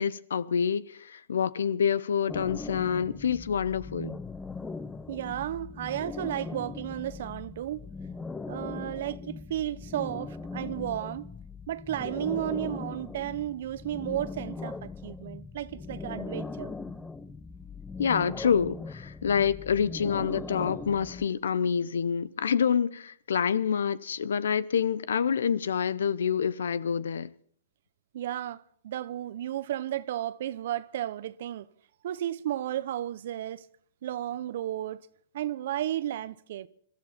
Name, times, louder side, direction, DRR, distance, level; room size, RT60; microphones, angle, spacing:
voice 1, 0.0-4.2 18.0-27.3, left 7 dB, 80° left, 0.8 m, -27 dB
sound 1, 2.3-21.3, left 4 dB, 10° left, 0.7 m, -40 dB
voice 2, 5.1-7.8 8.5-11.3 11.7-16.7 28.1-31.7 32.0-33.7 34.0-35.0 35.3-36.7, right 12 dB, 65° right, 0.8 m, -33 dB
22.0 x 13.5 x 4.4 m
hypercardioid pair, 130°, 0 cm